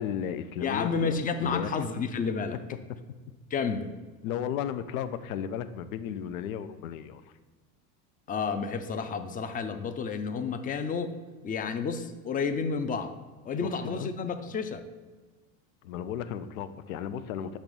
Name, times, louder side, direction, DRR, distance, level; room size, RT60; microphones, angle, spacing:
voice 1, 0.0-1.1 1.4-1.7 4.2-7.2 13.6-14.1 15.8-17.6, left 9 dB, 85° left, 12 dB, 0.5 m, -34 dB
voice 2, 0.6-2.6 3.5-3.9 8.3-11.2 11.4-13.1 13.5-14.8, left 5 dB, 20° left, 9 dB, 0.4 m, -30 dB
6.5 x 3.0 x 5.3 m, 1.4 s
supercardioid pair, 105°, 40 cm